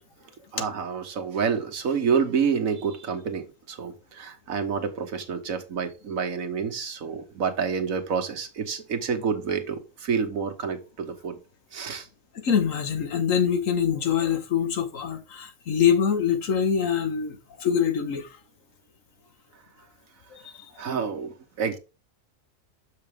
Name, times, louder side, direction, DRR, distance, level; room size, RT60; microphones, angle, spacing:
voice 1, 0.5-11.4 11.7-12.1 20.8-21.8, right 6 dB, 80° right, 1.6 m, -28 dB
voice 2, 12.4-18.4 20.3-20.8, left 8 dB, 75° left, 1.5 m, -24 dB
6.9 x 5.9 x 3.5 m
omnidirectional pair, 1.4 m